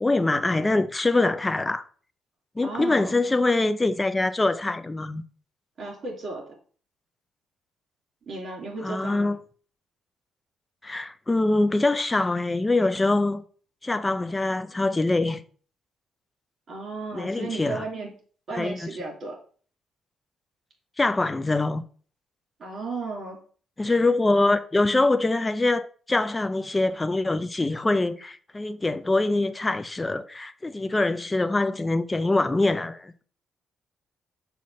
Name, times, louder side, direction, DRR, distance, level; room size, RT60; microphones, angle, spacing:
voice 1, 0.0-1.8 2.6-5.2 8.8-9.4 10.8-13.4 13.8-15.4 17.1-17.8 18.5-18.9 21.0-21.8 23.8-33.2, left 2 dB, 20° left, 0.5 m, -24 dB
voice 2, 2.6-3.1 5.8-6.5 8.3-9.3 16.7-18.1 18.5-19.4 22.6-23.4, right 3 dB, 45° right, 3.0 m, -34 dB
6.2 x 2.8 x 5.6 m
cardioid pair, 90°, 0 cm